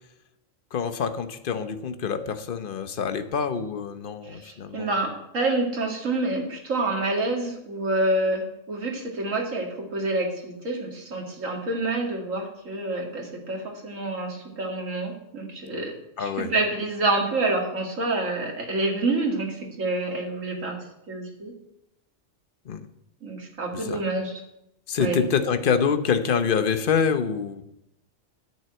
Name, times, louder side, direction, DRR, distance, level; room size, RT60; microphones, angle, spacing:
voice 1, 0.7-4.9 16.2-16.5 22.7-22.8 23.8-24.0 24.9-27.6, left 6 dB, 45° left, 10 dB, 0.9 m, -26 dB
voice 2, 4.2-20.8 21.1-21.5 23.2-24.4 25.0-25.2, right 2 dB, 70° right, 1 dB, 2.5 m, -28 dB
10.5 x 6.2 x 8.7 m, 0.84 s
omnidirectional pair, 1.4 m